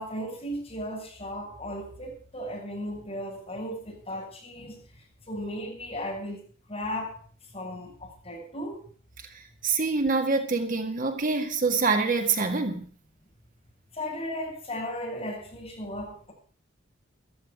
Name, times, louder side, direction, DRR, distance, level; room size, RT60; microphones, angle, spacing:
voice 1, 0.0-4.8 5.3-7.2 7.5-8.9 13.9-16.3, equal, 30° left, 7.6 m, -36 dB
voice 2, 9.3-12.9, right 4 dB, 45° right, 1.9 m, -26 dB
14.5 x 13.5 x 5.1 m
head